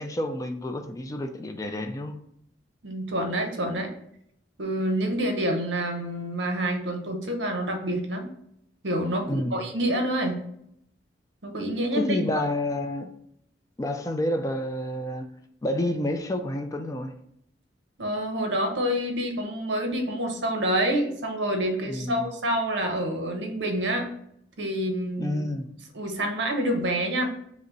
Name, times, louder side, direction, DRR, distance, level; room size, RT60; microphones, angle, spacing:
voice 1, 0.0-2.2 9.2-9.6 12.0-13.1 13.8-15.3 15.6-17.1 21.9-22.3 25.2-25.7, left 1 dB, 20° left, 6 dB, 0.3 m, -29 dB
voice 2, 2.8-3.9 4.6-8.3 8.8-10.4 11.4-12.2 18.0-24.1 24.6-25.5 25.9-27.3, right 1 dB, 70° right, 4 dB, 0.8 m, -27 dB
5.1 x 2.1 x 3.9 m, 0.71 s
head